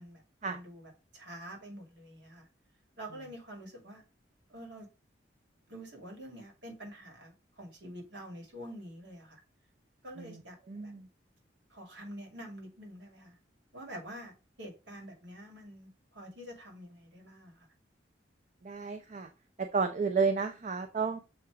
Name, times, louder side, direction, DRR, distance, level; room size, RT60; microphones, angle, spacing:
voice 1, 0.0-2.5 3.0-4.0 4.5-4.9 5.7-9.4 10.0-10.6 10.8-10.9 11.7-13.3 13.7-17.7, equal, 75° right, 2.4 m, -47 dB
voice 2, 10.7-11.1 18.6-19.3 19.6-21.2, right 5 dB, 45° right, 0.6 m, -31 dB
7.1 x 2.9 x 4.7 m
head